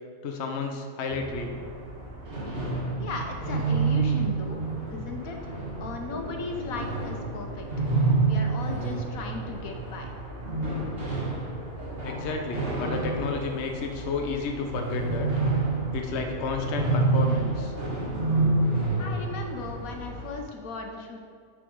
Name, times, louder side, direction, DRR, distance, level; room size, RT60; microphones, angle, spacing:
voice 1, 0.2-1.6 12.0-15.3 15.9-17.7, left 4 dB, 55° left, 3 dB, 1.0 m, -32 dB
sound 1, 1.1-20.3, right 3 dB, 40° right, 2.4 m, -29 dB
voice 2, 3.0-4.6 4.9-5.5 5.8-7.7 8.2-10.1 19.0-21.2, left 4 dB, 80° left, 3 dB, 1.4 m, -37 dB
sound 2, 6.1-10.4 11.3-15.1, left 2 dB, 40° left, 0.5 m, -47 dB
10.0 x 4.9 x 4.7 m, 2.2 s
omnidirectional pair, 1.5 m